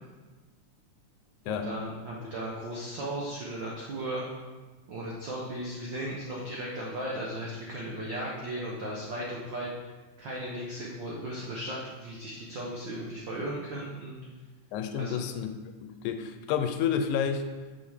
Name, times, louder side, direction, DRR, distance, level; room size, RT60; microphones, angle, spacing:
voice 1, 1.5-4.3 4.9-9.7 10.2-14.2 15.0-15.3, right 1 dB, 80° right, -4 dB, 1.0 m, -36 dB
voice 2, 14.7-15.5 15.8-17.5, left 8 dB, 85° left, 7 dB, 2.0 m, -30 dB
6.5 x 5.5 x 3.5 m, 1.3 s
omnidirectional pair, 3.4 m